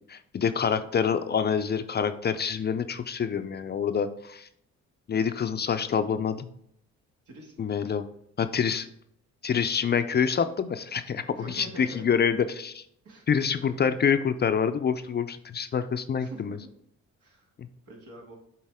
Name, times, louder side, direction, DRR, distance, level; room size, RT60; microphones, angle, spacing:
voice 1, 0.1-4.5 5.1-6.5 7.6-8.1 8.4-8.9 9.4-12.8 13.3-16.6 17.6-17.7, left 7 dB, 35° left, 10 dB, 0.4 m, -26 dB
voice 2, 7.3-7.7 11.4-12.1 13.0-13.7 16.2-16.7 17.2-17.5 17.9-18.4, right 2 dB, 75° right, -1 dB, 2.1 m, -45 dB
7.3 x 4.0 x 3.5 m, 0.70 s
cardioid pair, 90°, 30 cm